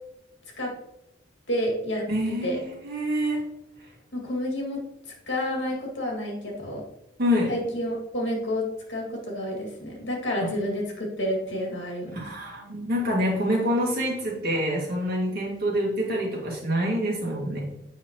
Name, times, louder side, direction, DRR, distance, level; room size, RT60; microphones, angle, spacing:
voice 1, 1.5-2.1 2.4-2.6 4.1-4.8 5.3-6.8 7.5-12.2, left 1 dB, 75° left, -1 dB, 2.1 m, -29 dB
voice 2, 2.1-3.4 7.2-7.5 10.4-10.5 12.1-17.6, equal, 55° right, -3 dB, 2.1 m, -26 dB
7.5 x 5.7 x 2.9 m, 0.85 s
head